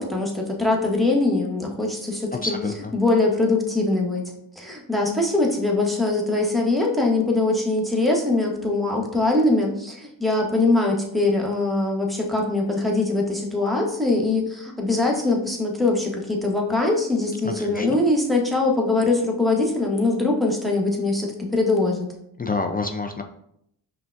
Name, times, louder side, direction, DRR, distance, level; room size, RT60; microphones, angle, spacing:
voice 1, 0.0-2.5 2.9-4.3 4.6-22.1, left 2 dB, ahead, 0 dB, 0.9 m, -22 dB
voice 2, 2.4-2.7 17.4-18.0 22.4-23.2, left 3 dB, 20° left, 3 dB, 0.3 m, -28 dB
5.5 x 2.2 x 2.5 m, 0.74 s
supercardioid pair, 40°, 45 cm